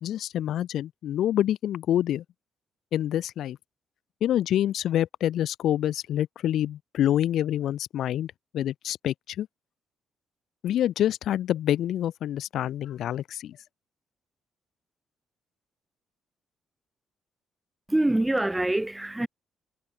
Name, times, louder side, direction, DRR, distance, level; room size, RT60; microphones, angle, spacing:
voice 1, 0.0-2.2 2.9-3.6 4.2-9.5 10.6-13.6, left 11 dB, 75° left, 1.3 m, -27 dB
voice 2, 17.9-19.3, right 1 dB, 10° right, 3.2 m, -25 dB
cardioid pair, 90°, 0 cm